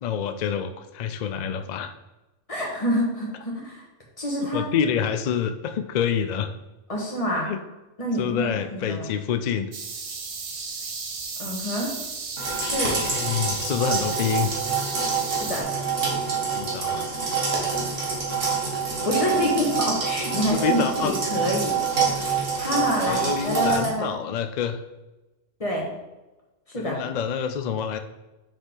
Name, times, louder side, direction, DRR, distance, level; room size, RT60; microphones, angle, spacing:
voice 1, 0.0-1.9 4.4-6.5 7.3-7.6 8.2-9.7 13.0-14.5 16.5-17.1 20.4-21.2 22.1-22.3 23.1-24.8 26.8-28.0, left 8 dB, 75° left, 8 dB, 0.4 m, -27 dB
voice 2, 2.5-3.8 4.2-4.6 6.9-7.5 8.0-9.1 11.4-11.9 12.6-13.0 15.3-15.7 19.0-21.7 22.6-24.1 25.6-25.9 26.7-27.0, left 1 dB, 30° left, -2 dB, 1.7 m, -27 dB
sound 1, 9.7-15.6, right 4 dB, 40° right, 0.5 m, -34 dB
sound 2, 12.4-23.9, right 5 dB, 80° right, 1.8 m, -26 dB
6.4 x 4.9 x 3.9 m, 1.0 s
omnidirectional pair, 1.3 m